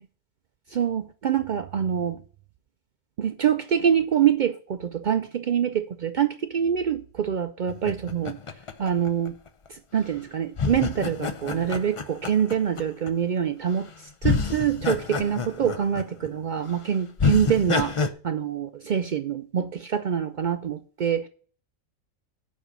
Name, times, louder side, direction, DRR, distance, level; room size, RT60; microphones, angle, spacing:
voice 1, 0.7-2.2 3.2-8.4 8.8-9.3 9.7-13.9 14.2-17.9 18.2-21.3, right 8 dB, 80° right, 0.4 m, -25 dB
sound 1, 7.7-9.7 10.6-13.1 13.7-13.9 14.2-16.3 16.7-16.8 17.2-18.1, left 5 dB, 45° left, 0.4 m, -28 dB
7.4 x 5.5 x 6.7 m
omnidirectional pair, 1.4 m